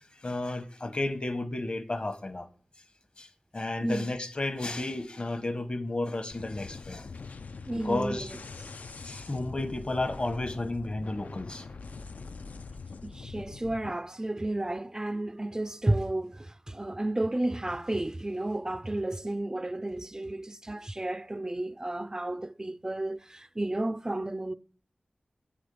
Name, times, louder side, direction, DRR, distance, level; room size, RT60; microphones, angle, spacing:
voice 1, 0.0-2.5 3.2-3.3 3.5-7.1 7.8-8.3 9.0-11.6, left 2 dB, 45° left, 1.0 m, -32 dB
sound 1, 6.3-13.9, left 4 dB, 75° left, 0.4 m, -43 dB
voice 2, 7.7-8.3 13.0-24.5, right 1 dB, 25° right, 0.4 m, -32 dB
8.0 x 5.0 x 6.8 m
wide cardioid pair, 65°, 3 cm